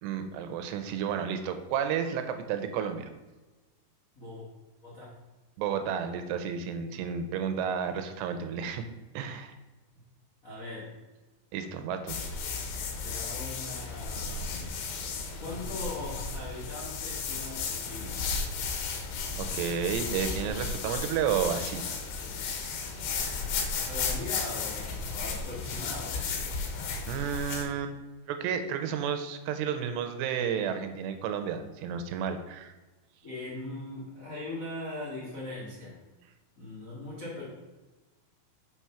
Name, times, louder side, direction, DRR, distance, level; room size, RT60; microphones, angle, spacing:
voice 1, 0.0-3.1 5.6-8.9 9.1-9.5 11.5-12.2 19.4-21.8 27.1-27.9 28.3-32.7, right 7 dB, 80° right, 8 dB, 2.9 m, -31 dB
voice 2, 4.1-4.5 4.8-5.2 10.4-10.9 13.0-14.9 15.4-18.5 23.8-26.7 33.2-36.0 36.6-37.4, left 2 dB, 50° left, -6 dB, 0.9 m, -40 dB
sound 1, 12.1-27.6, left 5 dB, 75° left, 3.2 m, -34 dB
6.5 x 6.1 x 5.6 m, 1.2 s
omnidirectional pair, 4.9 m